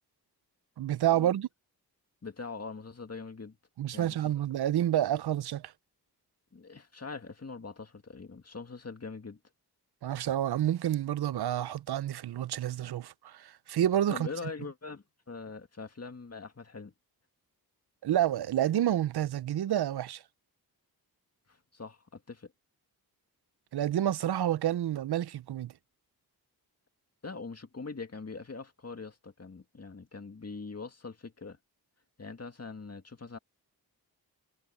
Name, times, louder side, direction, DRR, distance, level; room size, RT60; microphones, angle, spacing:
voice 1, 0.8-1.5 3.8-5.7 10.0-14.3 18.0-20.2 23.7-25.7, right 11 dB, 75° right, 0.5 m, -29 dB
voice 2, 2.2-3.6 3.9-4.3 6.5-9.4 14.1-16.9 21.5-22.5 27.2-31.6 32.2-33.4, left 4 dB, 40° left, 2.2 m, -43 dB
wide cardioid pair, 80°, 39 cm